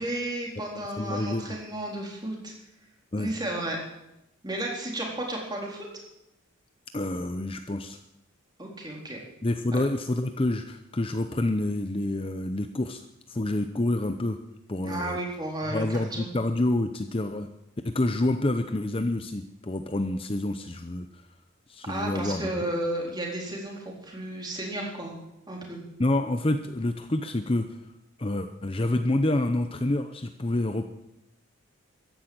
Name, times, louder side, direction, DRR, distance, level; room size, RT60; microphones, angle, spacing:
voice 1, 0.0-2.5 3.2-3.8 4.4-5.9 8.6-9.2 14.8-16.3 21.9-25.2 25.5-25.8, right 1 dB, 20° right, -1 dB, 3.9 m, -33 dB
voice 2, 1.0-1.6 3.1-3.3 6.9-8.0 9.4-13.0 13.3-14.4 14.7-15.2 15.7-17.5 17.8-21.2 21.7-22.6 26.0-27.7 28.2-30.8, left 1 dB, 25° left, 7 dB, 0.7 m, -28 dB
14.5 x 10.5 x 8.8 m, 0.88 s
head